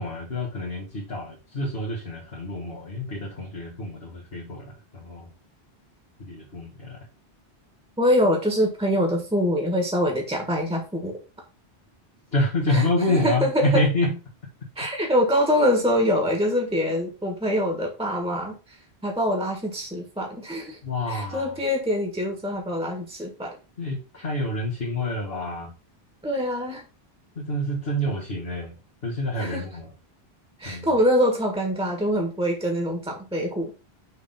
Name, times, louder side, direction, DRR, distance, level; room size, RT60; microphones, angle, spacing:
voice 1, 0.0-5.3 6.2-7.0 12.3-14.1 20.8-21.5 23.8-25.7 27.4-28.7 29.0-29.9 30.6-30.9, left 1 dB, 65° left, -3 dB, 2.0 m, -27 dB
voice 2, 8.0-11.2 12.7-13.8 14.8-18.6 19.0-20.8 21.1-23.5 26.2-26.8 29.4-29.6 30.6-33.7, equal, 5° right, 1 dB, 1.6 m, -24 dB
6.5 x 3.6 x 5.7 m, 0.32 s
omnidirectional pair, 1.1 m